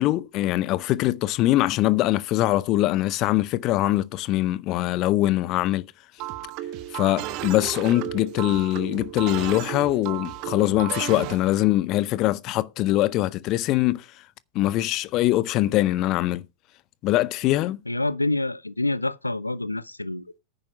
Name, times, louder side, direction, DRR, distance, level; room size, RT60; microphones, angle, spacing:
voice 1, 0.0-5.9 6.9-14.0 14.5-16.4 17.0-17.8, left 16 dB, 40° left, 0.6 m, -23 dB
sound 1, 6.2-11.6, right 13 dB, 40° right, 1.2 m, -34 dB
voice 2, 17.9-20.4, left 2 dB, 85° left, 0.7 m, -27 dB
10.5 x 8.9 x 5.2 m
figure-of-eight pair, 90°, 0 cm